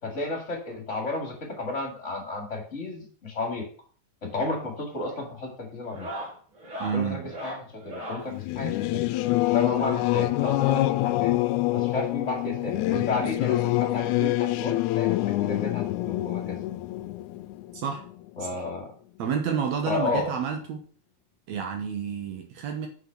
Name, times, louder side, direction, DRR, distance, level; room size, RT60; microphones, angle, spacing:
voice 1, 0.0-3.6 4.2-6.1 6.9-9.1 9.5-11.4 11.7-15.8 16.2-16.6 18.4-18.9 19.9-20.3, left 3 dB, 25° left, 1 dB, 2.6 m, -32 dB
sound 1, 4.3-4.6 4.9-5.2 5.8-8.3 9.6-11.0 12.1-12.2 12.4-12.5 12.9-13.0 14.3-14.4 15.8-15.9, equal, 45° right, 3.3 m, -40 dB
voice 2, 6.8-7.3 17.7-18.0 18.5-18.6 19.2-20.8 21.5-22.9, right 7 dB, 70° right, 4 dB, 2.2 m, -30 dB
Singing / Musical instrument, 8.3-18.4, left 17 dB, 85° left, 2.0 m, -26 dB
6.5 x 6.2 x 6.1 m, 0.44 s
omnidirectional pair, 3.4 m